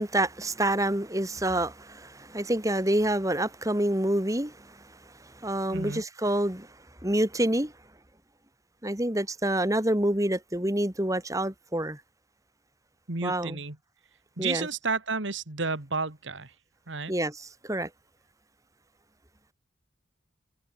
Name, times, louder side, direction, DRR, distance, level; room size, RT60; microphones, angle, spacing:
voice 1, 0.0-4.8 5.4-6.7 7.0-7.7 8.8-12.0 13.2-13.6 14.4-14.7 17.1-17.9, right 1 dB, 15° right, 2.1 m, -27 dB
voice 2, 5.7-6.0 13.1-13.8 14.4-16.5 16.9-17.1, right 4 dB, 75° right, 2.1 m, -31 dB
head